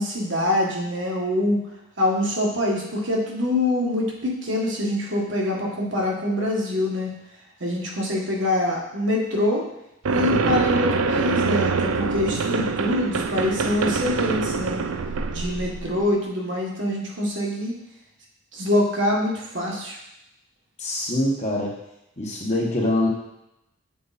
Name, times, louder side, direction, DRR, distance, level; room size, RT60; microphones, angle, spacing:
voice 1, 0.0-1.6 2.0-7.1 7.6-9.7 10.1-14.8 15.3-17.7 18.5-20.0, left 1 dB, 60° right, -2 dB, 1.5 m, -24 dB
sound 1, 10.1-16.1, right 4 dB, 90° right, 0.5 m, -24 dB
voice 2, 20.8-21.7 22.2-23.1, left 1 dB, 35° left, -2 dB, 1.3 m, -24 dB
6.9 x 4.6 x 4.1 m, 0.85 s
head